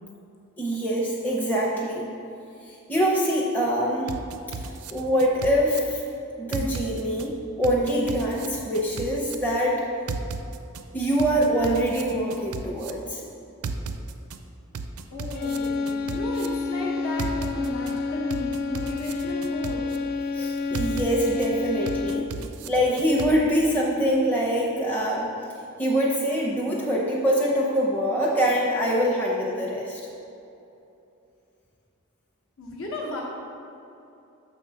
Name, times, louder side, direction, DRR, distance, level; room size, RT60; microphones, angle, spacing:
voice 1, 0.6-2.1 2.6-4.2 4.9-6.0 6.4-9.8 10.9-13.2 20.3-22.2 22.6-25.3 25.8-30.0, equal, 10° left, -4 dB, 0.6 m, -24 dB
sound 1, 4.1-5.8 6.5-7.3 7.6-9.3 10.1-10.8 11.2-12.9 13.6-14.4 14.7-16.5 17.2-17.9 18.3-20.0 20.7-21.5 21.9-23.3, right 5 dB, 80° right, 0.4 m, -34 dB
voice 2, 15.1-20.0 22.4-22.5 32.6-33.2, left 1 dB, 60° left, -2 dB, 0.9 m, -34 dB
sound 2, 15.3-22.5, left 4 dB, 45° left, 0.3 m, -29 dB
6.7 x 3.7 x 5.5 m, 2.8 s
head